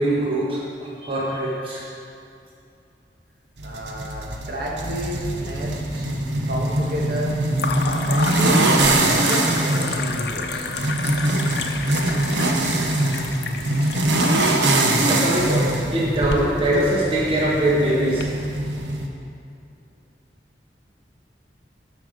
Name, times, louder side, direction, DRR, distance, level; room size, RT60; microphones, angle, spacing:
voice 1, 0.0-1.8 13.5-13.9 15.1-18.3, right 1 dB, 30° right, -5 dB, 1.3 m, -23 dB
voice 2, 3.6-6.1 6.4-7.4 7.8-10.7, equal, 55° right, -2 dB, 1.7 m, -31 dB
sound 1, 3.6-19.1, right 1 dB, 90° right, 0.9 m, -23 dB
sound 2, 4.4-5.2 5.5-6.1 7.5-18.2, left 4 dB, 65° left, 0.7 m, -32 dB
12.5 x 5.4 x 5.1 m, 2.5 s
head